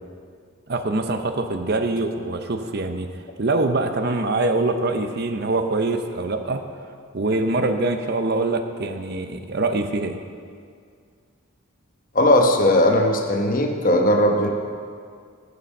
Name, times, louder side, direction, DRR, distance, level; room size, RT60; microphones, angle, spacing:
voice 1, 0.7-3.1 3.4-6.6 7.1-10.2, right 2 dB, 50° right, 7 dB, 0.7 m, -24 dB
voice 2, 12.1-14.5, left 1 dB, 40° left, 3 dB, 1.0 m, -18 dB
14.5 x 6.8 x 5.4 m, 2.2 s
head